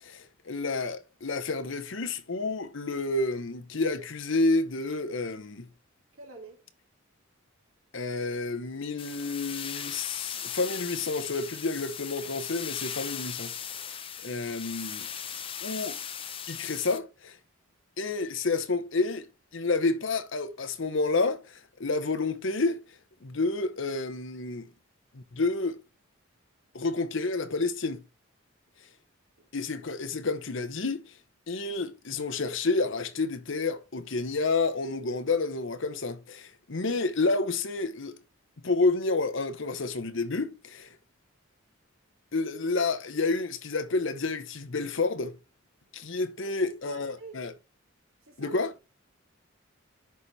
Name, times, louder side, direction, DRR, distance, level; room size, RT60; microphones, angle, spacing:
voice 1, 0.0-5.6 7.9-13.5 13.8-14.0 14.2-15.1 15.6-16.0 16.5-17.4 18.0-19.3 19.5-22.8 23.2-24.7 25.1-25.8 26.7-28.0 29.5-31.1 31.5-38.2 38.6-40.9 42.3-45.3 45.9-47.5 48.4-48.7, left 3 dB, 60° left, 0.9 m, -29 dB
voice 2, 6.2-6.6 46.4-46.5 46.9-47.4 48.3-48.6, right 5 dB, 85° right, 2.5 m, -44 dB
sound 1, 9.0-17.0, left 8 dB, 25° left, 0.5 m, -38 dB
10.5 x 4.2 x 3.1 m
head